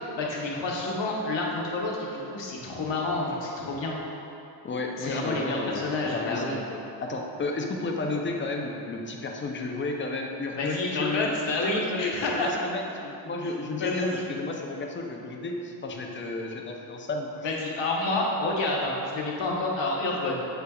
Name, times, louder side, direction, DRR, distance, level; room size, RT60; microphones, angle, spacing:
voice 1, 0.2-4.0 5.0-6.6 10.5-12.5 13.8-14.2 17.4-20.4, left 2 dB, 70° left, -2 dB, 0.9 m, -29 dB
voice 2, 4.6-11.3 11.6-12.0 12.3-17.3, left 3 dB, 25° left, 1 dB, 0.4 m, -33 dB
6.8 x 3.4 x 2.2 m, 2.9 s
cardioid pair, 90°, 46 cm